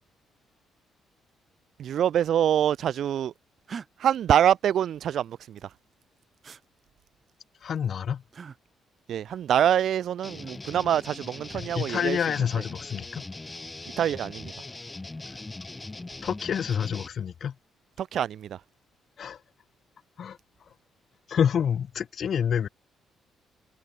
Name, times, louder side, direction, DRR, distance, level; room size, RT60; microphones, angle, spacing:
voice 1, 1.8-3.3 4.0-5.7 9.1-12.2 12.6-12.7 14.0-14.5 18.0-18.6, right 10 dB, 70° right, 0.4 m, -25 dB
sound 1, 3.7-3.9 6.4-6.6 8.3-8.6 10.3-10.8, right 6 dB, 50° right, 1.7 m, -41 dB
voice 2, 7.6-8.2 11.5-13.2 16.2-17.5 19.2-19.4 20.2-20.4 21.3-22.7, left 8 dB, 60° left, 0.7 m, -28 dB
sound 2, 10.2-17.1, left 2 dB, 20° left, 1.8 m, -40 dB
cardioid pair, 70°, 0 cm